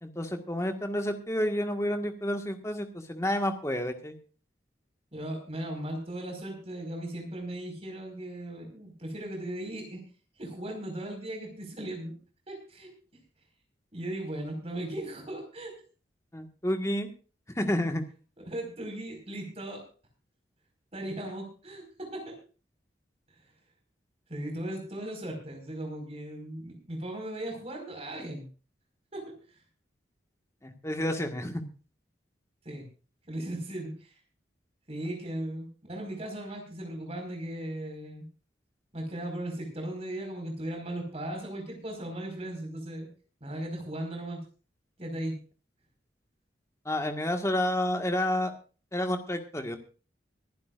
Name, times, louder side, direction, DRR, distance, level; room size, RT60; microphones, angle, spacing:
voice 1, 0.0-4.2 16.3-17.1 17.5-18.0 30.6-31.6 46.8-48.5 48.9-49.8, left 1 dB, 15° left, 5 dB, 1.6 m, -30 dB
voice 2, 5.1-10.0 10.4-12.1 12.5-12.9 13.9-15.7 18.4-19.8 20.9-22.4 24.3-28.5 29.1-29.6 32.6-32.9 33.3-34.1 34.9-38.3 38.9-43.1 43.4-44.4 45.0-45.4, right 1 dB, 35° right, 2 dB, 4.9 m, -37 dB
25.0 x 11.5 x 2.5 m, 0.37 s
head